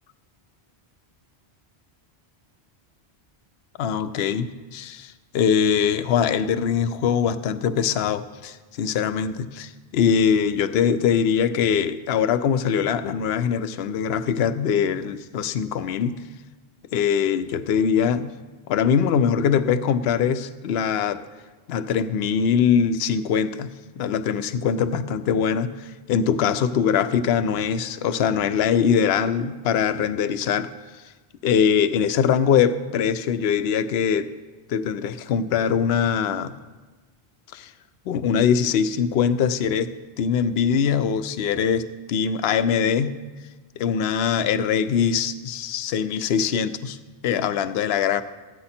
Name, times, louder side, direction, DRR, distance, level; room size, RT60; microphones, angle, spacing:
voice 1, 3.8-16.2 16.9-18.3 18.7-21.2 21.7-23.7 24.0-30.7 31.4-34.3 34.7-36.6 37.5-37.7 38.1-43.1 43.8-47.0 47.2-48.2, left 7 dB, 75° left, 11 dB, 0.8 m, -22 dB
14.0 x 9.7 x 4.3 m, 1.3 s
omnidirectional pair, 1.1 m